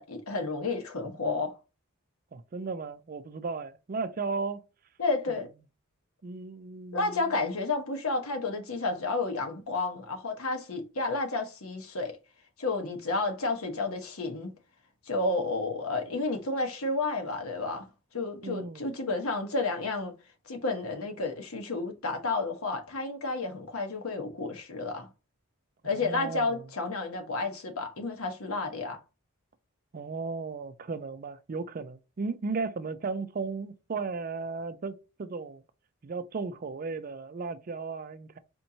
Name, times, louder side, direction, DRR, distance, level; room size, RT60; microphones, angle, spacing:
voice 1, 0.1-1.5 5.0-5.5 6.9-12.2 12.6-14.5 15.1-17.9 18.1-20.1 20.5-25.1 25.8-29.0, left 3 dB, 80° left, 1.1 m, -31 dB
voice 2, 2.3-4.6 6.2-7.2 18.4-18.9 25.8-26.7 29.9-35.6 36.0-38.4, right 4 dB, 40° right, 0.4 m, -35 dB
4.3 x 2.9 x 2.7 m
head